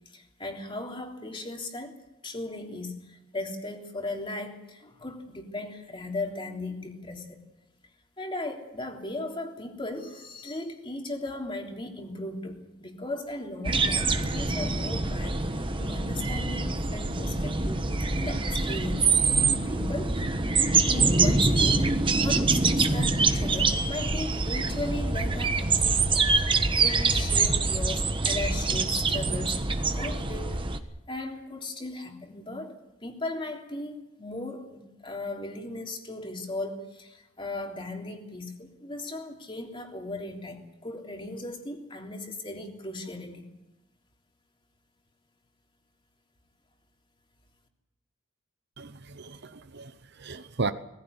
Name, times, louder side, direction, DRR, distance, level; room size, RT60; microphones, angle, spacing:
voice 1, 0.1-2.0 2.2-7.4 8.2-19.2 19.6-20.2 20.9-29.6 29.9-30.6 31.1-43.5, left 2 dB, 25° left, 1 dB, 3.3 m, -37 dB
sound 1, 13.6-30.8, right 3 dB, 25° right, 1.3 m, -25 dB
voice 2, 48.8-50.7, right 3 dB, 55° right, 11 dB, 0.9 m, -35 dB
21.0 x 15.5 x 9.8 m, 0.96 s
head